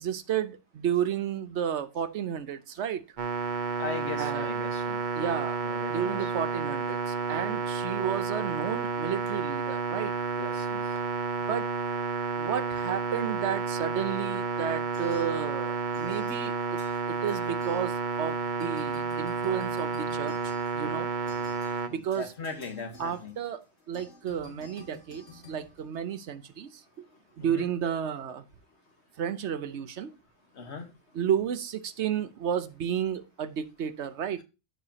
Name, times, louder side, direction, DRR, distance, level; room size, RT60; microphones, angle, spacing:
voice 1, 0.0-3.0 4.2-4.5 5.2-5.6 5.9-10.1 11.4-11.7 12.4-16.8 17.1-21.1 21.9-22.3 23.0-27.0 27.4-28.4 29.2-30.1 31.1-34.4, right 8 dB, 75° right, 1.1 m, -32 dB
sound 1, 3.2-21.9, right 5 dB, 45° right, 0.8 m, -31 dB
voice 2, 3.8-5.0 5.6-6.3 10.4-10.8 21.9-23.3 27.5-27.7 30.6-30.9, left 4 dB, 65° left, 1.6 m, -38 dB
sound 2, 14.9-15.7 15.9-18.3 18.6-26.5, left 3 dB, 85° left, 2.5 m, -52 dB
14.0 x 5.0 x 2.8 m
omnidirectional pair, 1.2 m